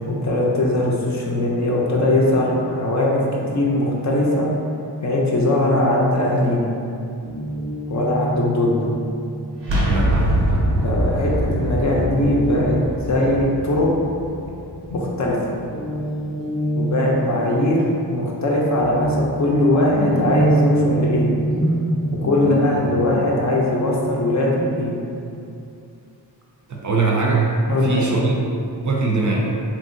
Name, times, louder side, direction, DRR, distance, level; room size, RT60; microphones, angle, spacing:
voice 1, 0.0-4.5 5.0-6.7 7.9-8.9 10.8-12.8 13.1-13.9 14.9-15.5 16.7-17.8 18.1-21.3 22.1-24.9 27.7-28.1, left 1 dB, 45° left, -3 dB, 0.6 m, -20 dB
Guitar, 7.2-14.9 15.2-25.7, right 1 dB, ahead, 0.6 m, -28 dB
sound 1, 9.6-15.3, right 1 dB, 85° right, 0.6 m, -23 dB
voice 2, 9.8-10.3 26.7-27.5 27.8-29.5, right 3 dB, 45° right, -2 dB, 0.5 m, -21 dB
2.9 x 2.6 x 2.5 m, 2.6 s
cardioid pair, 65°, 42 cm